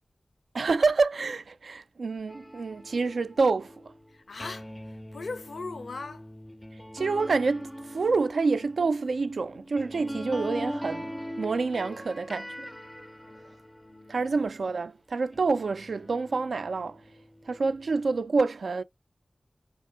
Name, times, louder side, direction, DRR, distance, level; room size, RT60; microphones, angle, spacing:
voice 1, 0.5-3.7 6.9-11.1 11.4-12.7 14.1-17.0 17.5-18.8, right 4 dB, 90° right, 0.3 m, -27 dB
sound 1, 2.3-14.8 15.3-18.2, equal, 10° left, 0.4 m, -41 dB
voice 2, 4.1-6.3 13.2-14.3, left 3 dB, 75° left, 0.5 m, -40 dB
3.6 x 2.5 x 3.3 m
wide cardioid pair, 80°, 0 cm